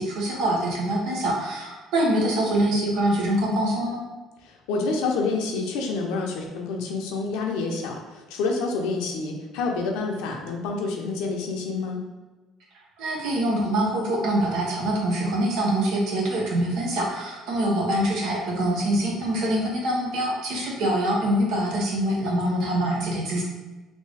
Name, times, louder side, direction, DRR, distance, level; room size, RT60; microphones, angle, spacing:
voice 1, 0.0-4.0 13.0-23.4, right 1 dB, 75° right, -2 dB, 0.9 m, -24 dB
voice 2, 4.4-12.0, left 3 dB, 85° left, 1 dB, 0.6 m, -28 dB
3.4 x 2.7 x 3.3 m, 1.2 s
cardioid pair, 100°, 0 cm